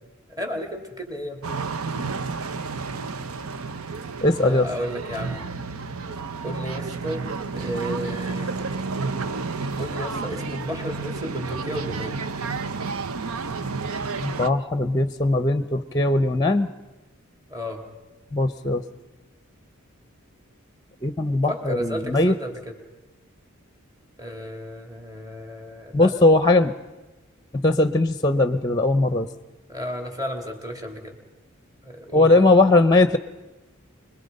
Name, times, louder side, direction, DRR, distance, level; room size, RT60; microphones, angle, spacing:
voice 1, 0.3-1.5 4.4-5.4 6.4-7.3 7.5-8.6 9.8-12.2 17.5-17.8 21.5-22.7 24.2-26.1 29.7-31.2 31.8-32.5, equal, 15° right, 3 dB, 3.1 m, -33 dB
sound 1, 1.4-14.5, right 4 dB, 90° right, 0.8 m, -31 dB
voice 2, 4.2-4.7 14.2-16.7 18.3-18.8 21.0-22.3 25.9-26.7 27.5-29.3 32.1-33.2, left 2 dB, 20° left, 12 dB, 0.7 m, -19 dB
26.0 x 22.0 x 5.4 m, 1.1 s
head